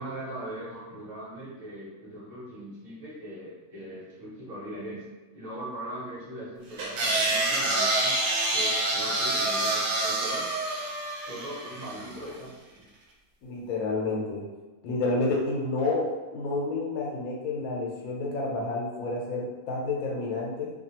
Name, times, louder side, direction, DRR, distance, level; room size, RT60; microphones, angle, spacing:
voice 1, 0.0-5.0 5.3-8.1 8.5-10.5 11.1-12.8, right 1 dB, 45° right, -9 dB, 1.0 m, -40 dB
sound 1, 6.8-12.1, right 2 dB, 85° right, 1.1 m, -27 dB
voice 2, 13.4-14.4 14.8-20.7, left 3 dB, 80° left, -3 dB, 1.1 m, -29 dB
2.8 x 2.3 x 2.8 m, 1.2 s
omnidirectional pair, 1.5 m